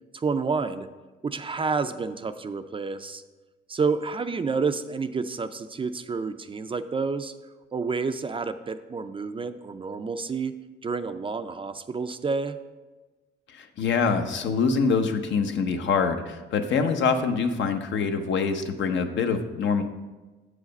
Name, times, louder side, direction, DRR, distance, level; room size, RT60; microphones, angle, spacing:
voice 1, 0.1-0.9 1.2-3.2 3.7-7.3 7.7-10.5 10.8-12.6, right 4 dB, 25° right, 10 dB, 0.4 m, -29 dB
voice 2, 13.5-19.8, left 5 dB, 70° left, 6 dB, 0.8 m, -25 dB
7.6 x 4.9 x 5.2 m, 1.2 s
cardioid pair, 90°, 20 cm